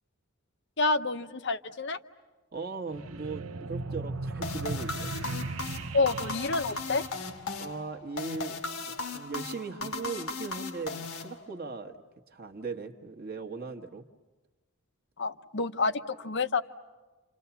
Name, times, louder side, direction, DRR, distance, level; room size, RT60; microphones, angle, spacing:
voice 1, 0.8-2.0 5.9-7.0 15.2-16.6, left 3 dB, 55° left, 11 dB, 0.8 m, -28 dB
voice 2, 2.5-5.1 7.6-12.0 12.3-14.1, right 4 dB, 45° right, 4 dB, 1.2 m, -39 dB
sound 1, 2.9-7.9, right 3 dB, 70° right, 0.8 m, -38 dB
sound 2, 4.4-11.8, left 3 dB, 70° left, 1.5 m, -37 dB
29.5 x 28.0 x 7.0 m, 1.2 s
head